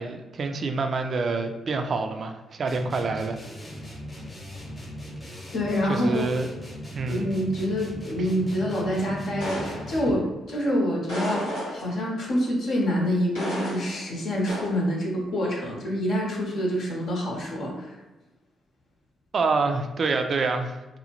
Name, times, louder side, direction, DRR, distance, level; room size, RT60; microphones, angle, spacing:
voice 1, 0.0-3.4 5.9-6.5 6.9-7.3 19.3-21.0, right 3 dB, 55° right, 6 dB, 0.3 m, -27 dB
sound 1, 2.7-10.3, equal, 30° left, 0.8 m, -39 dB
voice 2, 5.5-6.3 7.0-18.0, equal, 65° left, -2 dB, 0.7 m, -26 dB
sound 2, 9.4-10.3 11.1-12.1 13.3-14.1 14.5-14.9, equal, 90° left, 1.0 m, -32 dB
2.7 x 2.0 x 2.8 m, 1.1 s
hypercardioid pair, 40°, 0 cm